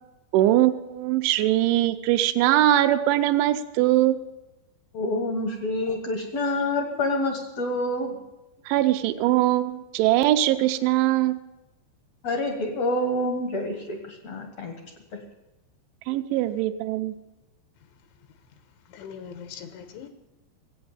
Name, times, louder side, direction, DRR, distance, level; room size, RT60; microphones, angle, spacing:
voice 1, 0.3-4.2 8.7-11.4 16.1-17.1, right 14 dB, 80° right, 7 dB, 3.1 m, -21 dB
voice 2, 4.9-8.1 12.2-14.7 15.1-15.2, left 1 dB, 65° left, 4 dB, 1.6 m, -27 dB
voice 3, 18.9-20.1, left 7 dB, 80° left, 8 dB, 3.6 m, -41 dB
17.0 x 8.6 x 8.8 m, 1.0 s
omnidirectional pair, 5.4 m